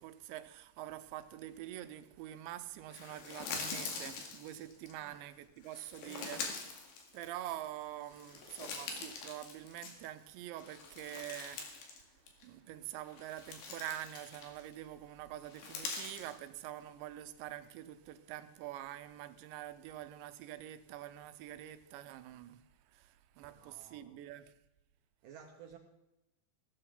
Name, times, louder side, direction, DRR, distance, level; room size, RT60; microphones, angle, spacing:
voice 1, 0.0-6.4 7.1-11.6 12.4-22.6 22.9-23.0 23.4-24.5, right 13 dB, 85° right, 3.0 m, -46 dB
sound 1, 2.9-4.9 5.6-7.7 8.0-10.2 10.6-12.0 12.3-12.4 13.1-14.7 15.4-16.4, left 4 dB, 70° left, 3.9 m, -44 dB
voice 2, 6.1-6.5 23.4-24.3 25.2-25.8, right 7 dB, 70° right, 2.1 m, -55 dB
16.5 x 13.5 x 3.9 m
omnidirectional pair, 5.1 m